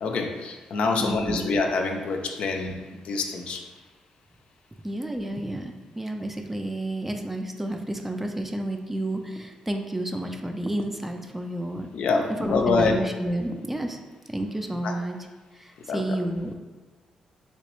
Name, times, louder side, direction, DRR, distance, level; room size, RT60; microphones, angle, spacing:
voice 1, 0.0-2.8 3.0-3.6 11.9-13.1 14.8-15.0 15.9-16.2, left 4 dB, 70° left, 4 dB, 0.4 m, -26 dB
voice 2, 1.0-1.5 4.8-11.9 12.4-14.0 14.3-15.2 15.6-16.5, right 1 dB, 10° right, 4 dB, 0.3 m, -30 dB
3.2 x 3.0 x 3.0 m, 1.3 s
cardioid pair, 95°, 2 cm